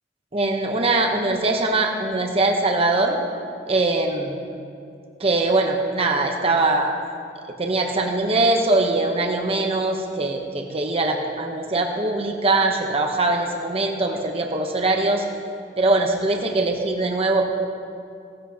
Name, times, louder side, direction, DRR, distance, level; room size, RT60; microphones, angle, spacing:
voice 1, 0.3-3.2 3.7-4.4 5.2-6.9 7.6-15.2 15.8-17.5, right 2 dB, 35° right, 2 dB, 0.9 m, -22 dB
17.0 x 13.0 x 2.9 m, 2.4 s
head